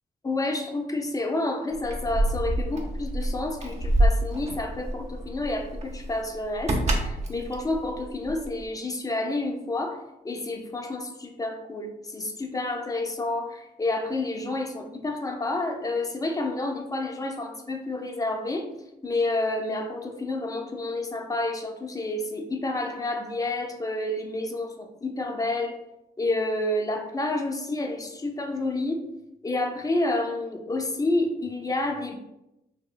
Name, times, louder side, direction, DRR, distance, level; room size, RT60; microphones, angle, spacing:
voice 1, 0.2-10.0 10.2-18.7 19.0-25.7 26.2-29.0 29.4-32.2, left 2 dB, 20° left, 3 dB, 0.5 m, -29 dB
Keys jangling, 1.7-8.6, right 1 dB, 40° right, 0.6 m, -27 dB
2.9 x 2.8 x 2.3 m, 0.91 s
cardioid pair, 85°, 17 cm